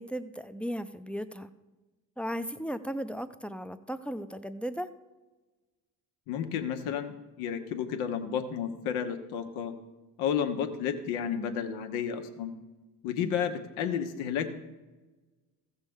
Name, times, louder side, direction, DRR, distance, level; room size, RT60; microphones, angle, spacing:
voice 1, 0.0-1.5 2.2-4.9, equal, 5° left, 11 dB, 0.5 m, -36 dB
voice 2, 6.3-9.7 10.2-12.5 13.0-14.5, left 8 dB, 75° left, 7 dB, 1.0 m, -32 dB
15.0 x 6.6 x 3.6 m, 1.2 s
hypercardioid pair, 50°, 47 cm